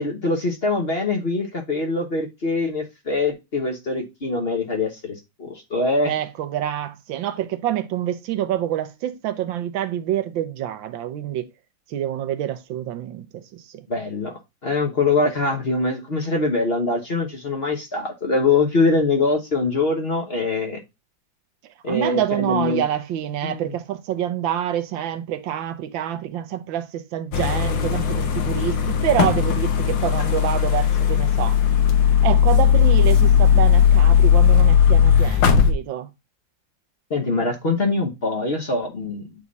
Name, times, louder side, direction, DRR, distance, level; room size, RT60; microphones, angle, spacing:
voice 1, 0.0-6.1 13.9-14.3 14.6-20.8 21.8-22.8 23.4-23.6 37.1-39.2, left 3 dB, 40° left, 1.1 m, -23 dB
voice 2, 6.0-11.5 11.9-13.8 15.2-15.3 21.9-31.6 32.2-36.1, right 11 dB, 85° right, 1.5 m, -27 dB
sound 1, 27.3-35.7, left 8 dB, 75° left, 1.7 m, -17 dB
8.5 x 3.6 x 4.0 m
omnidirectional pair, 2.0 m